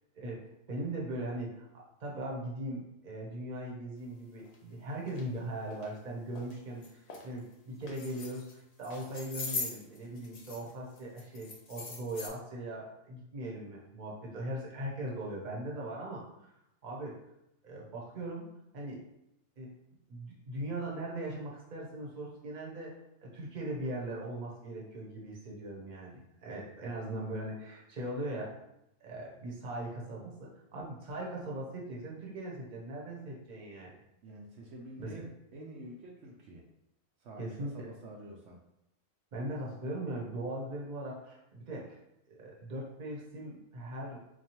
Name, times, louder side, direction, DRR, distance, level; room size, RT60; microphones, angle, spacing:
voice 1, 0.7-1.6 2.0-8.5 8.8-16.2 16.8-17.2 17.6-18.4 18.7-19.0 19.6-19.7 20.1-23.0 23.2-28.5 29.0-33.9 35.0-35.3 37.4-37.9 39.3-42.0 42.3-44.2, right 1 dB, 40° right, -3 dB, 0.9 m, -39 dB
sound 1, 4.5-4.6 5.1-5.2 5.7-5.9 6.4-6.5 6.8-7.3 7.8-8.5 8.8-10.7 11.0-12.3, left 4 dB, 70° left, 0.3 m, -41 dB
voice 2, 34.2-36.6 37.2-38.6, right 1 dB, 70° right, -2 dB, 0.9 m, -48 dB
4.5 x 2.4 x 2.9 m, 0.83 s
omnidirectional pair, 1.4 m